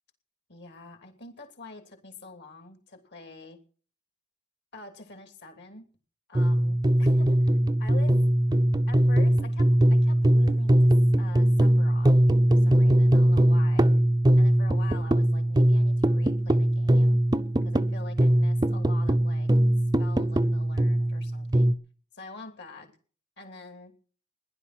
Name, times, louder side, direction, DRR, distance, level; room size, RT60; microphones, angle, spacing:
voice 1, 0.5-3.6 4.7-5.9 6.3-7.5 7.8-8.2 8.9-10.9 11.2-12.1 12.5-13.9 14.4-17.2 17.6-19.5 20.0-21.8 22.1-22.9 23.4-23.9, left 3 dB, 60° left, 6 dB, 2.9 m, -46 dB
sound 1, 6.3-21.7, right 1 dB, 20° right, 0.6 m, -21 dB
15.5 x 11.0 x 6.0 m, 0.42 s
head